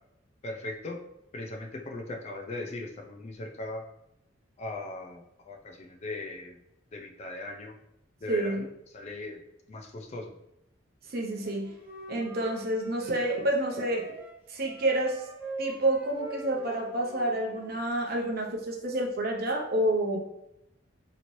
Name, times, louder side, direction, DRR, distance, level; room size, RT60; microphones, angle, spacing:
voice 1, 0.4-1.0 1.3-3.8 4.6-6.6 6.9-7.8 8.2-8.7 8.9-9.4 9.7-10.4, left 2 dB, 35° left, 2 dB, 0.4 m, -39 dB
voice 2, 8.3-8.6 11.1-11.7 12.1-14.1 14.5-15.2 15.6-20.2, right 1 dB, 50° right, 0 dB, 0.6 m, -28 dB
Wind instrument woodwind instrument, 11.4-17.8, right 2 dB, 10° right, 0.6 m, -44 dB
3.1 x 2.9 x 2.6 m, 0.84 s
head